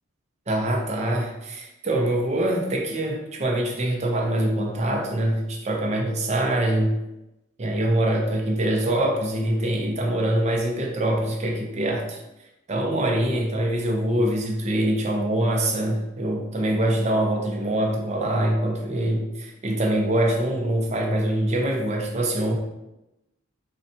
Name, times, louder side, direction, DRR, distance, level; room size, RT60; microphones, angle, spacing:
voice 1, 0.5-7.0 7.6-12.2 12.7-22.6, right 1 dB, 35° right, 0 dB, 0.5 m, -24 dB
3.9 x 2.1 x 2.7 m, 0.93 s
head